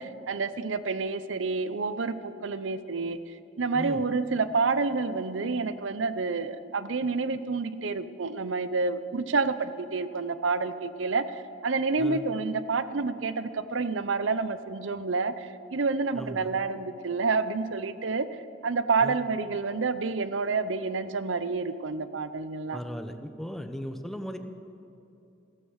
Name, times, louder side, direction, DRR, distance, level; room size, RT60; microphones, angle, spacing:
voice 1, 0.0-3.2 3.6-11.3 11.6-18.3 18.6-22.8, right 4 dB, 90° right, 13 dB, 0.7 m, -29 dB
voice 2, 3.7-4.1 12.0-12.2 16.1-16.5 19.0-19.2 22.7-24.4, equal, ahead, 7 dB, 0.8 m, -37 dB
14.5 x 14.0 x 6.4 m, 2.7 s
head